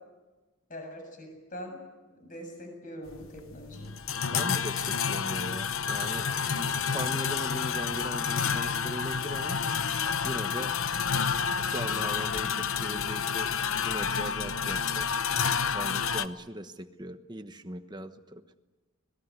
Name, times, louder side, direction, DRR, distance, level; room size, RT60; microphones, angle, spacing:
voice 1, 0.7-1.8 2.2-3.9, equal, 40° left, 4 dB, 7.6 m, -43 dB
sound 1, 3.1-16.3, left 6 dB, 70° left, 0.9 m, -29 dB
voice 2, 4.3-6.3 6.5-9.6 10.2-10.7 11.4-13.5 13.8-15.1 15.7-18.4, right 1 dB, 20° right, 8 dB, 1.1 m, -39 dB
25.0 x 20.0 x 9.7 m, 1.2 s
head